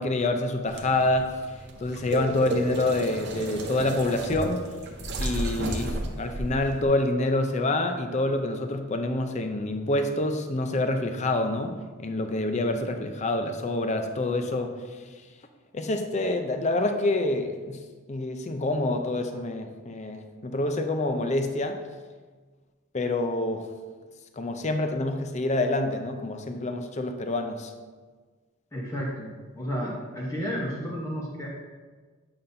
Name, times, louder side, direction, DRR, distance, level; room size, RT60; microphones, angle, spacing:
voice 1, 0.0-1.4 1.8-4.6 5.2-14.8 15.7-17.8 18.1-21.8 22.9-23.7 24.4-27.7, left 2 dB, 30° left, 6 dB, 0.5 m, -27 dB
sound 1, 0.7-6.8, right 1 dB, 50° right, 0.7 m, -33 dB
voice 2, 28.7-31.5, equal, 15° left, -4 dB, 0.8 m, -32 dB
8.6 x 5.6 x 2.6 m, 1.4 s
head